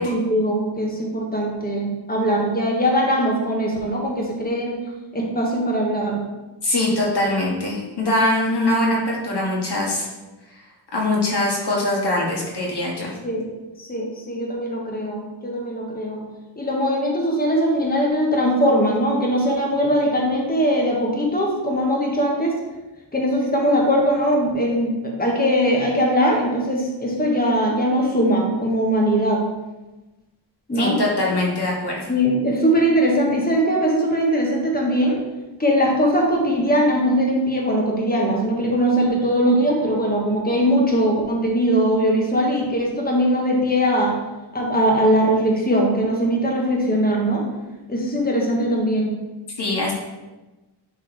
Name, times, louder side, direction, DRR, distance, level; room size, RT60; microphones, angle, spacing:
voice 1, 0.0-4.8 5.1-6.2 13.2-13.4 13.8-16.2 16.6-22.6 23.1-29.4 30.7-31.0 32.1-35.2 35.6-44.1 44.5-47.4 47.9-49.1, equal, 20° left, -1 dB, 1.3 m, -20 dB
voice 2, 6.6-10.1 10.9-13.2 30.8-32.1 49.6-49.9, left 1 dB, 55° left, -4 dB, 2.0 m, -22 dB
10.5 x 3.6 x 3.4 m, 1.1 s
wide cardioid pair, 125°, 47 cm